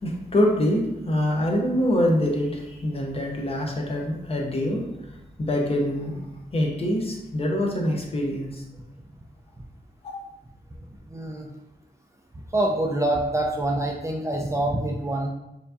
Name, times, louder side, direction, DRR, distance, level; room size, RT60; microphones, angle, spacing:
voice 1, 0.0-4.8 5.4-6.2 6.5-8.6 10.0-10.1, left 1 dB, 35° left, 0 dB, 0.7 m, -25 dB
voice 2, 11.1-11.5 12.5-15.3, right 1 dB, 15° right, -1 dB, 0.4 m, -25 dB
4.4 x 2.6 x 2.6 m, 0.91 s
wide cardioid pair, 135°, 17 cm